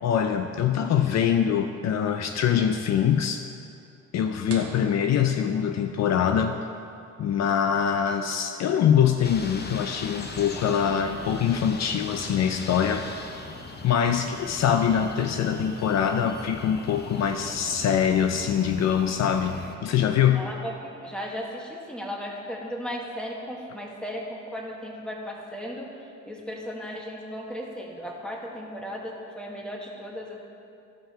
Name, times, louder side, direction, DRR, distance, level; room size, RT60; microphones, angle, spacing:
voice 1, 0.0-3.5 4.1-6.6 7.2-13.1 13.8-20.4, left 8 dB, 60° left, 7 dB, 0.6 m, -24 dB
sound 1, 4.5-6.2, right 5 dB, 50° right, 1.2 m, -45 dB
sound 2, 9.2-19.8, left 3 dB, 35° left, 1.0 m, -39 dB
voice 2, 20.3-25.9 26.3-30.4, equal, 5° left, -2 dB, 1.8 m, -36 dB
14.5 x 5.7 x 4.4 m, 2.6 s
cardioid pair, 90°, 30 cm